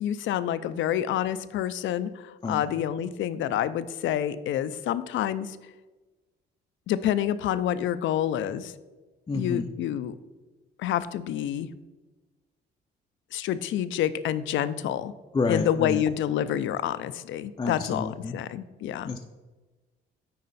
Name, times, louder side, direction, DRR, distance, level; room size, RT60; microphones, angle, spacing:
voice 1, 0.0-5.6 6.9-8.7 9.3-10.1 10.8-11.7 13.3-15.1 15.5-19.1, left 10 dB, 75° left, 14 dB, 0.5 m, -28 dB
voice 2, 9.3-9.7 15.3-16.0 17.6-18.4 19.0-19.3, left 3 dB, 20° left, 3 dB, 0.5 m, -29 dB
9.5 x 4.2 x 4.0 m, 1.2 s
cardioid pair, 90°, 20 cm